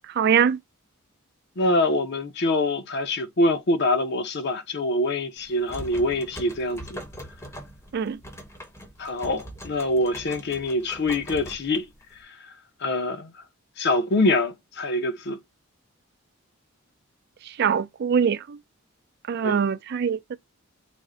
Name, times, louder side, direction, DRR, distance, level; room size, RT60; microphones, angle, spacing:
voice 1, 0.2-0.6 7.9-8.2 17.6-18.6 19.3-20.4, right 7 dB, 50° right, 0.3 m, -23 dB
voice 2, 1.6-7.0 9.0-11.9 12.3-12.4 12.8-13.3 13.8-15.4 19.4-19.6, left 2 dB, 55° left, 0.6 m, -25 dB
door knob clanking, 5.4-12.2, equal, 15° left, 0.6 m, -42 dB
3.4 x 2.1 x 3.7 m
head